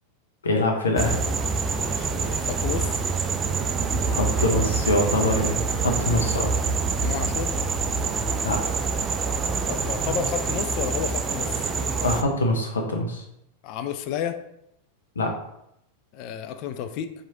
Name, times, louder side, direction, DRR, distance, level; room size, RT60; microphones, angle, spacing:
voice 1, 0.4-1.2 4.1-6.5 8.4-8.6 12.0-13.2 15.2-15.3, left 2 dB, 80° left, 2 dB, 0.7 m, -24 dB
sound 1, 1.0-12.2, right 4 dB, 25° right, 0.4 m, -26 dB
voice 2, 1.7-3.0 7.0-7.5 9.7-11.7 13.6-14.4 16.1-17.1, left 8 dB, 50° left, 9 dB, 0.3 m, -32 dB
3.0 x 2.5 x 4.1 m, 0.79 s
figure-of-eight pair, 95°, 0 cm